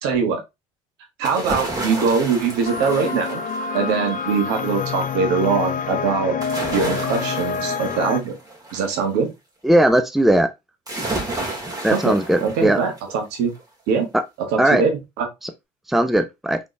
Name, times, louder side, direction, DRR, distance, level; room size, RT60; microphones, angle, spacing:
voice 1, 0.0-0.4 1.2-3.4 3.7-6.4 6.7-8.4 8.7-9.3 11.9-13.5 13.9-14.1 14.4-15.3, right 5 dB, 75° right, 1.4 m, -22 dB
sound 1, 1.2-4.1 6.4-9.0 10.9-13.1 13.6-13.7, right 2 dB, 20° right, 2.1 m, -31 dB
sound 2, 2.6-8.2, left 6 dB, 50° left, 0.6 m, -27 dB
voice 2, 9.6-10.5 11.8-12.8 14.6-14.8 15.9-16.6, right 1 dB, ahead, 0.6 m, -18 dB
3.9 x 3.4 x 3.1 m
hypercardioid pair, 65°, 17 cm